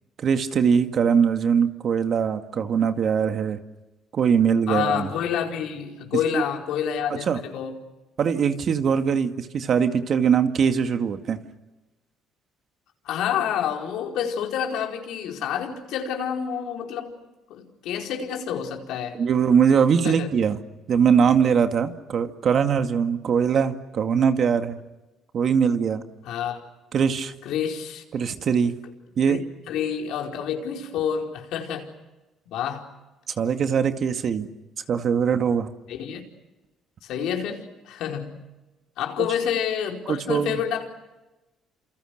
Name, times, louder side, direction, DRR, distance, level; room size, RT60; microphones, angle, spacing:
voice 1, 0.2-3.6 4.1-5.1 6.3-6.4 7.1-7.4 8.2-11.4 19.2-20.6 20.9-24.8 25.3-26.0 26.9-27.3 28.1-28.8 29.2-29.4 33.4-34.5 34.9-35.7 40.1-40.6, right 7 dB, 50° right, 7 dB, 2.1 m, -21 dB
voice 2, 4.7-7.8 13.0-17.1 17.5-19.2 20.0-20.3 26.2-26.6 27.4-28.0 29.3-29.4 29.7-31.9 32.5-32.9 35.9-36.2 37.0-38.4 39.0-40.9, left 8 dB, 75° left, 2 dB, 4.6 m, -28 dB
30.0 x 28.0 x 6.6 m, 1.1 s
cardioid pair, 105°, 0 cm